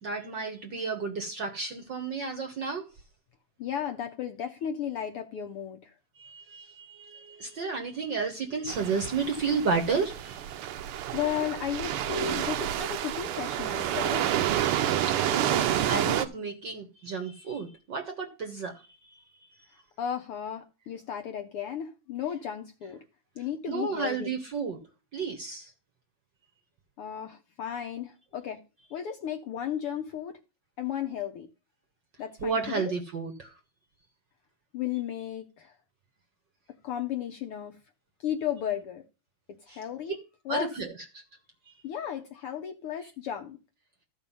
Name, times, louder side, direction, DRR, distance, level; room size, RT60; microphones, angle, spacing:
voice 1, 0.0-2.9 6.2-10.4 14.5-19.2 23.7-24.8 25.1-25.7 32.4-33.5 39.7-39.8 40.5-40.9 41.1-41.2 41.6-41.8, right 5 dB, 55° right, 1.3 m, -32 dB
voice 2, 3.6-5.9 11.1-14.3 20.0-23.0 23.4-24.3 27.0-28.6 28.9-30.4 30.8-31.5 32.2-32.9 34.7-35.8 36.8-37.8 38.2-39.0 39.5-40.2 40.4-40.7 41.8-43.6, left 9 dB, 70° left, 1.4 m, -34 dB
sound 1, 8.7-16.3, right 11 dB, 80° right, 1.2 m, -29 dB
14.0 x 4.9 x 5.4 m
omnidirectional pair, 3.3 m